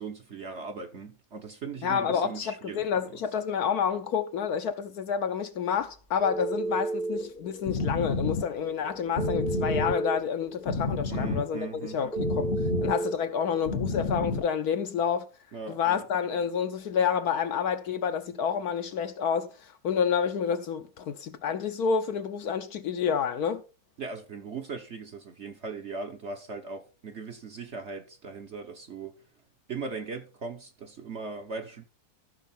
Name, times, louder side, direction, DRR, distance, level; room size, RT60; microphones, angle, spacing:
voice 1, 0.0-3.2 11.1-12.0 15.5-16.1 24.0-29.2 29.7-31.8, right 4 dB, 45° right, 1.0 m, -39 dB
voice 2, 1.8-12.5 12.8-15.3 15.7-23.6, left 7 dB, 65° left, 1.1 m, -29 dB
Telephone, 6.2-7.3 9.2-10.2 12.1-13.2, right 3 dB, ahead, 0.8 m, -31 dB
sound 1, 7.1-14.5, left 3 dB, 40° left, 0.8 m, -32 dB
14.0 x 6.5 x 4.3 m
omnidirectional pair, 2.0 m